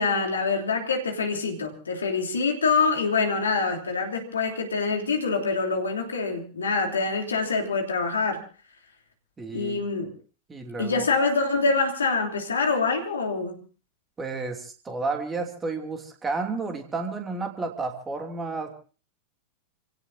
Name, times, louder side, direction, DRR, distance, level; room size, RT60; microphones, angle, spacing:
voice 1, 0.0-8.4 9.5-10.1 10.8-13.6, left 4 dB, 70° left, 3 dB, 3.1 m, -25 dB
voice 2, 9.4-9.8 10.5-11.1 14.2-18.8, right 3 dB, 15° right, 4 dB, 2.7 m, -31 dB
29.0 x 17.0 x 2.7 m, 0.38 s
figure-of-eight pair, 90°, 0 cm